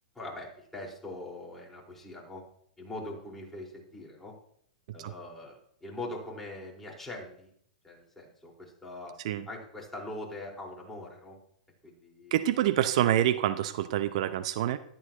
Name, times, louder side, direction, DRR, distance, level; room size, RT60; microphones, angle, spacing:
voice 1, 0.1-2.4 2.8-4.4 4.9-7.5 7.8-9.2 9.5-11.4 11.8-12.5, left 2 dB, 5° left, -3 dB, 4.6 m, -42 dB
voice 2, 12.3-14.8, right 12 dB, 60° right, 13 dB, 0.7 m, -26 dB
14.0 x 13.0 x 3.0 m, 0.67 s
hypercardioid pair, 115°, 4 cm